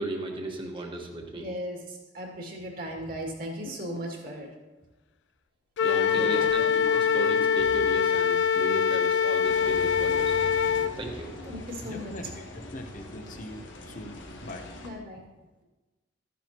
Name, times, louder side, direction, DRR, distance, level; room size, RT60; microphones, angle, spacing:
voice 1, 0.0-1.5 5.8-10.4 11.0-11.3, right 2 dB, 25° right, 1 dB, 1.4 m, -35 dB
voice 2, 1.3-4.5 6.1-6.5 11.5-12.2 14.8-15.2, equal, 50° right, 0 dB, 2.1 m, -37 dB
sound 1, 3.7-4.5 5.8-9.4, left 2 dB, 15° left, 0.8 m, -45 dB
Wind instrument woodwind instrument, 5.8-10.9, left 7 dB, 65° left, 0.3 m, -24 dB
sound 2, 9.4-14.9, left 1 dB, 85° left, 1.4 m, -42 dB
voice 3, 11.8-14.7, left 1 dB, 45° left, 5 dB, 0.8 m, -42 dB
13.5 x 10.0 x 2.9 m, 1.1 s
head